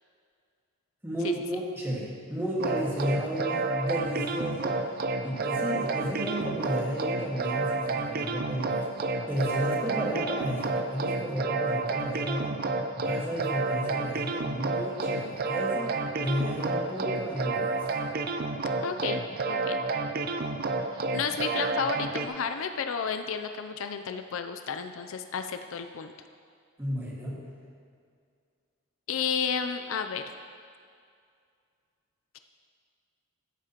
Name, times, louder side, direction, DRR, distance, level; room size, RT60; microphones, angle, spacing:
voice 1, 1.0-4.8 5.2-8.8 9.3-12.6 12.9-17.8 26.8-27.4, equal, 10° right, -5 dB, 1.7 m, -32 dB
sound 1, 2.6-22.3, right 3 dB, 45° right, 0.5 m, -30 dB
voice 2, 18.8-19.2 19.5-19.8 20.9-26.1 29.1-30.2, left 6 dB, 65° left, 8 dB, 0.4 m, -32 dB
13.0 x 8.7 x 2.9 m, 2.3 s
head